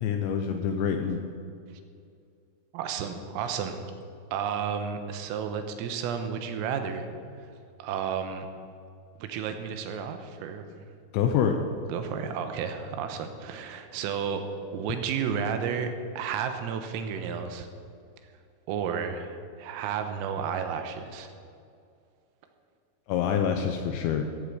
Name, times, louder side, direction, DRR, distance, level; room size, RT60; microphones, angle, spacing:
voice 1, 0.0-1.2 11.1-11.6 23.1-24.3, left 8 dB, 80° left, 5 dB, 2.7 m, -26 dB
voice 2, 2.7-3.8 4.3-7.1 7.8-8.5 9.2-10.7 11.9-14.4 14.7-17.7 18.7-21.3, right 7 dB, 90° right, 7 dB, 3.7 m, -32 dB
15.0 x 15.0 x 5.0 m, 2.4 s
omnidirectional pair, 6.0 m